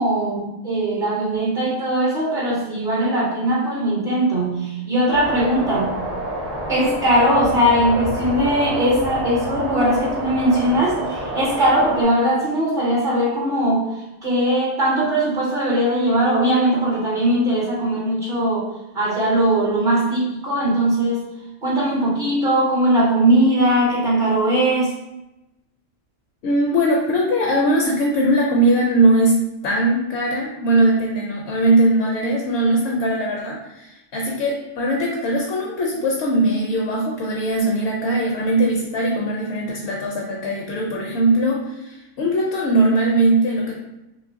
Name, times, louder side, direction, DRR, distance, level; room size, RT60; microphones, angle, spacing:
voice 1, 0.0-6.0 6.7-18.7 18.9-21.3 21.6-24.9, right 1 dB, 45° right, -7 dB, 0.8 m, -20 dB
sound 1, 5.1-12.0, equal, 15° right, 0.5 m, -28 dB
voice 2, 26.4-43.7, right 1 dB, 65° left, -2 dB, 0.8 m, -20 dB
3.0 x 3.0 x 2.5 m, 0.94 s
omnidirectional pair, 1.4 m